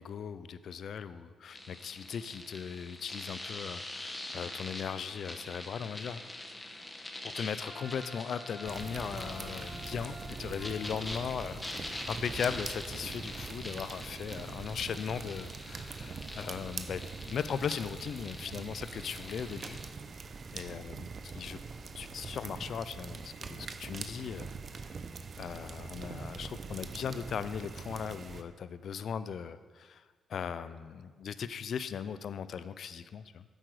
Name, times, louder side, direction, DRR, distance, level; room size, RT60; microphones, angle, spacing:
voice 1, 0.0-6.5 7.2-19.8 20.5-21.1 21.3-21.6 21.9-24.5 24.8-24.9 25.4-30.0 30.3-33.4, left 7 dB, 65° left, 13 dB, 0.4 m, -38 dB
sound 1, 1.5-19.9, left 1 dB, 20° left, 1.2 m, -44 dB
Wind instrument woodwind instrument, 7.5-11.3, left 1 dB, 5° left, 1.5 m, -50 dB
sound 2, 8.7-28.4, right 4 dB, 50° right, 0.6 m, -43 dB
9.1 x 7.7 x 4.8 m, 1.5 s
cardioid pair, 75°, 0 cm